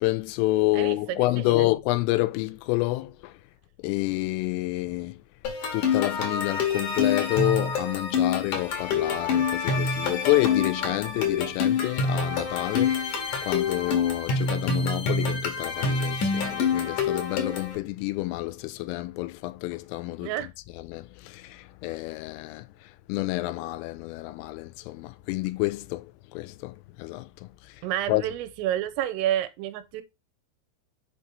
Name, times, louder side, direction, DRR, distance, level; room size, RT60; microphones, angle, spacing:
voice 1, 0.0-3.4 3.8-5.2 5.7-20.3 20.8-27.8 28.1-28.2, left 19 dB, 85° left, 3.1 m, -29 dB
voice 2, 0.7-1.7 20.2-20.5 27.8-30.0, right 12 dB, 85° right, 3.4 m, -29 dB
sound 1, 5.4-17.7, left 5 dB, 65° left, 2.0 m, -26 dB
7.9 x 3.1 x 5.2 m
omnidirectional pair, 5.8 m